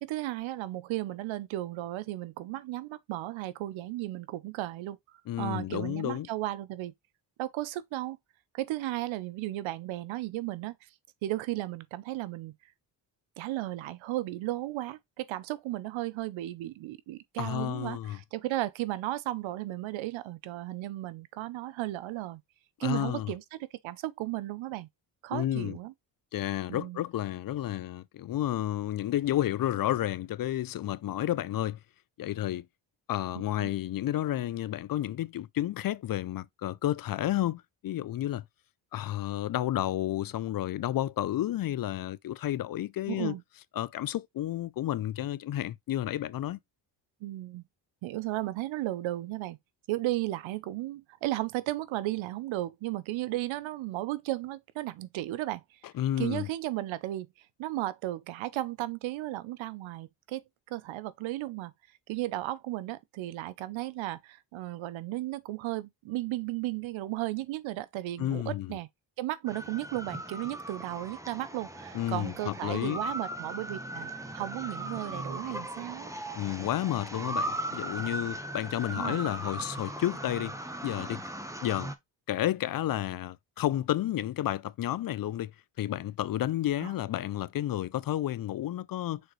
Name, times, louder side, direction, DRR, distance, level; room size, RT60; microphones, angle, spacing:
voice 1, 0.0-5.0 5.4-6.9 7.4-8.2 8.5-10.8 11.2-12.5 13.4-22.4 22.8-24.9 25.2-25.9 26.7-27.0 33.6-33.7 43.1-43.4 47.2-47.6 48.0-49.6 49.9-55.6 56.2-57.3 57.6-61.7 62.1-68.9 69.2-76.1 78.9-79.2 86.8-86.9, right 16 dB, 85° right, 0.7 m, -35 dB
voice 2, 5.3-6.3 17.4-18.2 22.8-23.3 25.3-25.8 26.3-31.8 32.2-32.6 33.1-38.4 38.9-43.4 43.8-46.6 55.9-56.5 68.2-68.8 71.9-73.0 76.3-80.5 80.8-81.2 81.6-81.9 82.3-85.5 85.8-89.2, left 13 dB, 50° left, 0.5 m, -31 dB
sound 1, 69.5-82.0, right 1 dB, 5° right, 1.1 m, -38 dB
6.3 x 4.8 x 3.1 m
cardioid pair, 90°, 46 cm